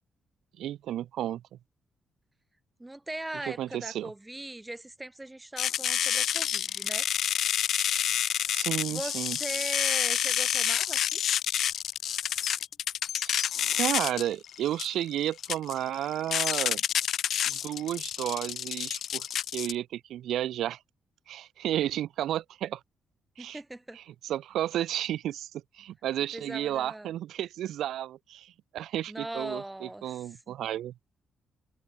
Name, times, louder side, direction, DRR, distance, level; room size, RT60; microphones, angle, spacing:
voice 1, 0.6-1.6 3.5-4.1 8.5-9.4 13.1-13.4 13.7-16.8 17.5-20.8 21.3-22.8 23.4-23.6 23.9-30.9, right 12 dB, 85° right, 1.8 m, -32 dB
voice 2, 2.8-7.1 8.9-11.2 23.4-24.0 26.3-27.1 29.1-30.2 30.5-30.6, right 1 dB, 10° right, 2.4 m, -39 dB
sound 1, 5.6-19.7, left 10 dB, 60° left, 1.0 m, -29 dB
cardioid pair, 165°, 0 cm